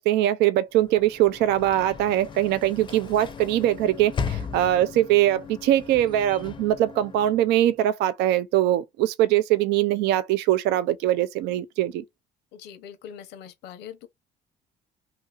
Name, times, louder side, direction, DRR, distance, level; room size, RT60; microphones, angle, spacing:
voice 1, 0.0-12.0, right 13 dB, 80° right, 0.4 m, -22 dB
Sliding door / Slam, 0.8-7.8, left 6 dB, 30° left, 0.5 m, -37 dB
voice 2, 12.5-14.1, left 9 dB, 90° left, 0.7 m, -42 dB
2.8 x 2.6 x 2.3 m
cardioid pair, 110°, 17 cm